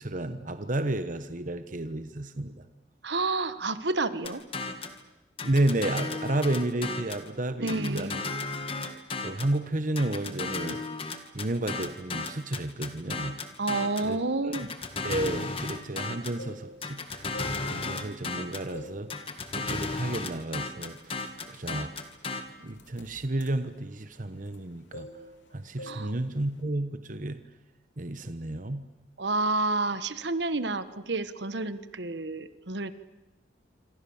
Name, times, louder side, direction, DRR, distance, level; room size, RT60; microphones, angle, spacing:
voice 1, 0.0-2.6 5.4-8.2 8.8-10.8 11.3-13.4 14.0-14.7 15.0-19.1 19.5-21.9 22.6-25.1 25.5-27.4 28.0-28.8, right 1 dB, 45° right, 10 dB, 1.1 m, -32 dB
voice 2, 3.0-4.4 7.6-8.2 13.6-14.7 25.9-26.1 29.2-32.9, right 3 dB, 65° right, 12 dB, 1.3 m, -29 dB
sound 1, 4.2-5.0 5.4-7.3 7.7-9.6 10.0-14.1 14.5-16.4 16.8-18.7 19.1-22.4, left 3 dB, 30° left, 1.9 m, -34 dB
sound 2, 16.2-16.9 17.3-18.3 18.7-19.1 19.4-19.7 20.3-20.5 20.8-24.6 24.9-25.5 25.8-26.1 26.3-26.6, equal, 80° left, 3.0 m, -46 dB
26.5 x 26.0 x 7.2 m, 1.0 s
head